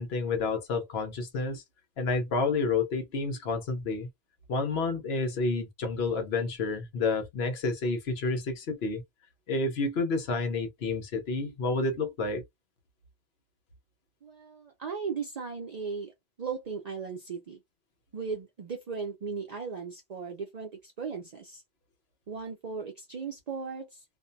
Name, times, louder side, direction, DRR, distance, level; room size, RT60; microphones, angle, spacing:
voice 1, 0.0-1.6 2.0-4.1 4.5-9.0 9.5-12.4, left 3 dB, 80° left, 1.0 m, -29 dB
voice 2, 14.2-16.1 16.4-17.6 18.1-21.6 22.3-24.0, right 5 dB, 50° right, 0.5 m, -37 dB
2.5 x 2.1 x 2.6 m
omnidirectional pair, 1.1 m